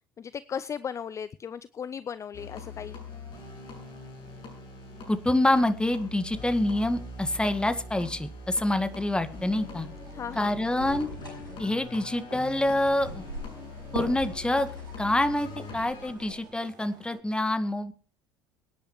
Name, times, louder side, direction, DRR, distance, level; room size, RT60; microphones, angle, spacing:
voice 1, 0.2-3.0 10.1-10.5, left 7 dB, 30° left, 18 dB, 0.5 m, -36 dB
sound 1, 2.3-16.1, left 2 dB, 50° left, 7.6 m, -43 dB
voice 2, 5.1-9.9 10.4-11.1 11.6-13.2 13.9-14.7 15.0-17.9, left 1 dB, 10° left, 10 dB, 1.8 m, -26 dB
sound 2, 8.7-17.2, right 7 dB, 40° right, 2.8 m, -54 dB
sound 3, 10.8-16.4, equal, 90° left, 5.3 m, -41 dB
24.0 x 10.0 x 3.2 m, 0.40 s
figure-of-eight pair, 65°, 11 cm